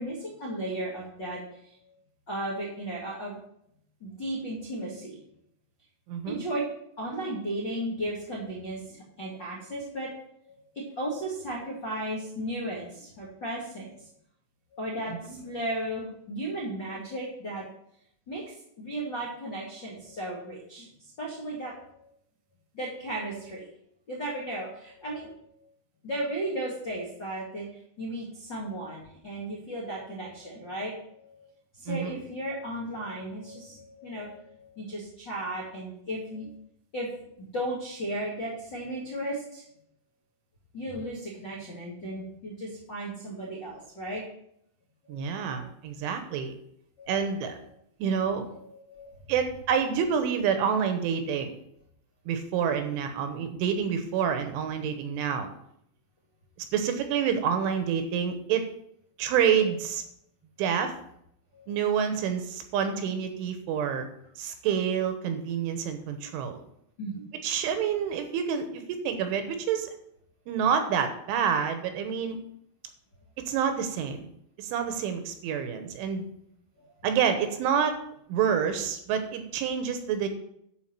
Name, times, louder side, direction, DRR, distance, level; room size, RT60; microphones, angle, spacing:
voice 1, 0.0-1.9 2.3-3.4 4.0-5.2 6.2-6.6 7.0-10.1 10.4-10.6 10.9-14.1 14.7-17.6 18.3-20.9 21.2-22.1 22.7-23.7 24.1-25.5 26.0-27.7 28.0-31.5 31.7-36.5 36.9-37.1 37.4-39.6 40.7-44.2 45.0-45.6 47.0-47.1 47.4-47.5 48.5-49.1 61.5-61.7 67.0-67.2 74.7-74.8 75.7-75.8 76.8-76.9, right 1 dB, 50° left, -6 dB, 1.3 m, -35 dB
voice 2, 6.1-6.4 15.1-15.4 31.9-32.2 45.1-46.5 47.1-47.6 48.0-48.4 49.3-51.5 52.3-55.5 56.7-58.7 59.2-60.0 60.6-60.9 61.7-64.1 64.4-66.6 67.4-69.9 70.5-72.4 73.4-74.3 74.6-76.3 77.0-78.0 78.3-80.3, right 7 dB, 75° right, 7 dB, 3.2 m, -28 dB
12.0 x 4.7 x 7.4 m, 0.72 s
omnidirectional pair, 5.9 m